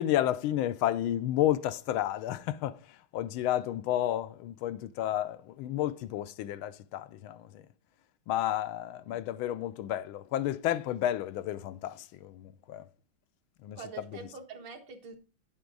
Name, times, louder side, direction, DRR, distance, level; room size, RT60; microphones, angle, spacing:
voice 1, 0.0-7.7 8.3-12.9 13.6-13.8, left 12 dB, 85° left, 1.5 m, -31 dB
voice 2, 13.8-15.2, right 5 dB, 65° right, 2.2 m, -45 dB
10.0 x 8.2 x 3.9 m
omnidirectional pair, 2.2 m